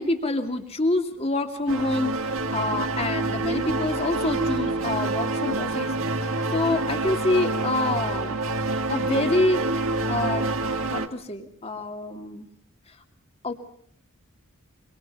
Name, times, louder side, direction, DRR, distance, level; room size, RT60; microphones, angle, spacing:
voice 1, 0.0-8.4 8.9-9.6 10.1-10.5 10.9-12.5 13.4-13.5, left 2 dB, 30° left, 6 dB, 2.6 m, -27 dB
sound 1, 1.7-11.1, right 2 dB, 65° right, 2.0 m, -27 dB
25.0 x 25.0 x 5.6 m, 0.63 s
head